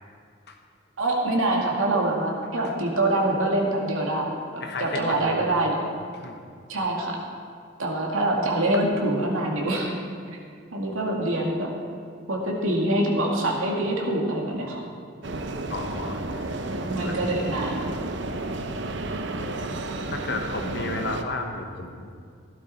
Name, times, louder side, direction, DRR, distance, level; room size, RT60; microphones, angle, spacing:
voice 1, 1.0-5.7 6.7-7.1 7.8-10.0 10.7-11.7 12.3-14.8 16.6-17.9, right 1 dB, 80° right, -1 dB, 2.2 m, -25 dB
voice 2, 4.6-5.7 6.2-6.4 15.7-16.5 17.0-17.2 19.4-19.6 20.1-22.1, left 2 dB, 50° left, 4 dB, 1.1 m, -33 dB
sound 1, 15.2-21.2, right 2 dB, 55° right, 0.8 m, -32 dB
15.5 x 12.0 x 4.3 m, 2.3 s
head